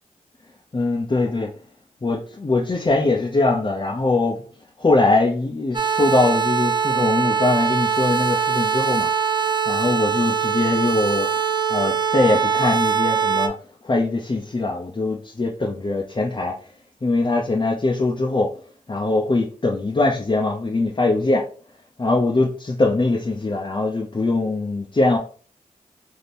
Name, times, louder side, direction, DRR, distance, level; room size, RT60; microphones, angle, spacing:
voice 1, 0.7-1.5 2.0-4.4 4.8-9.4 9.7-11.3 11.7-13.6 13.8-16.5 17.0-18.5 18.9-21.4 22.0-25.2, left 2 dB, 35° left, 0.7 m, -22 dB
sound 1, 5.7-13.5, right 6 dB, 30° right, 0.7 m, -22 dB
3.4 x 2.8 x 4.3 m
cardioid pair, 45°, 15 cm